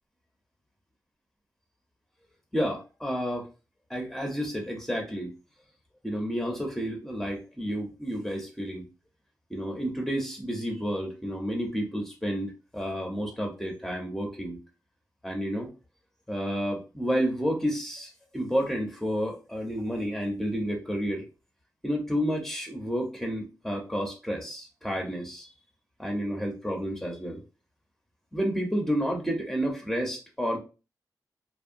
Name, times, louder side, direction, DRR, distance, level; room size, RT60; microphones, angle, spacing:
voice 1, 2.5-3.5 3.9-5.3 6.0-8.8 9.5-14.6 15.2-15.7 16.3-21.2 21.8-25.5 26.0-27.4 28.3-30.6, equal, ahead, 0 dB, 0.7 m, -30 dB
2.7 x 2.1 x 2.5 m, 0.32 s
cardioid pair, 75°, 7 cm